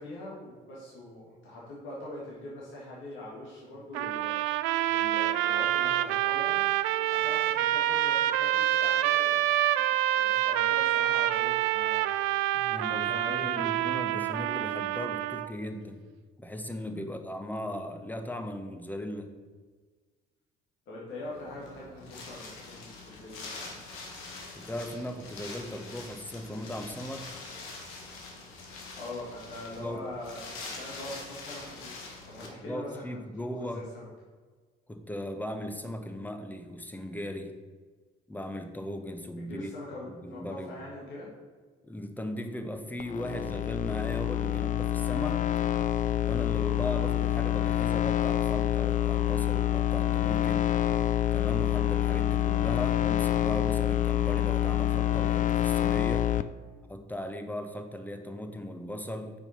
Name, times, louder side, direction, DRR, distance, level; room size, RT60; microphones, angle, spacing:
voice 1, 0.0-4.4 4.8-6.6 7.1-9.5 10.1-12.2 12.9-13.6 20.9-23.8 29.0-31.9 32.2-33.0 33.4-34.1 39.4-41.3, left 1 dB, 65° left, -6 dB, 1.9 m, -42 dB
sound 1, 3.9-15.5, right 13 dB, 75° right, 0.4 m, -27 dB
voice 2, 12.5-16.0 16.4-19.3 24.5-27.3 29.7-30.0 32.4-33.9 34.9-37.5 38.3-39.7 40.0-40.7 41.8-45.4 46.2-50.7 51.3-56.3 56.9-59.3, left 1 dB, 10° left, 6 dB, 0.9 m, -37 dB
Wind, 21.2-32.5, left 3 dB, 80° left, 1.3 m, -44 dB
sound 2, 43.0-56.4, left 12 dB, 40° left, 0.4 m, -27 dB
5.5 x 4.4 x 5.7 m, 1.5 s
supercardioid pair, 70°, 21 cm